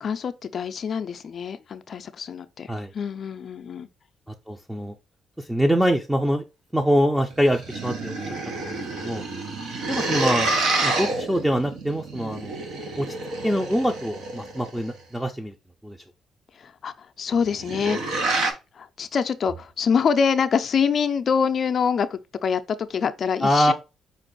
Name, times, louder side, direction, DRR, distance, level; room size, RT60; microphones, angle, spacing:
voice 1, 0.0-3.9 16.6-18.4 18.7-23.7, left 6 dB, 55° left, 0.4 m, -25 dB
voice 2, 4.5-4.9 5.4-6.4 6.7-8.2 8.5-9.2 9.9-12.6 13.0-13.1 13.4-15.5 15.8-16.0 23.4-23.7, equal, 5° right, 0.5 m, -24 dB
sound 1, 7.3-14.9 17.3-18.5, right 2 dB, 80° right, 1.0 m, -28 dB
5.2 x 2.5 x 3.8 m
cardioid pair, 90°, 0 cm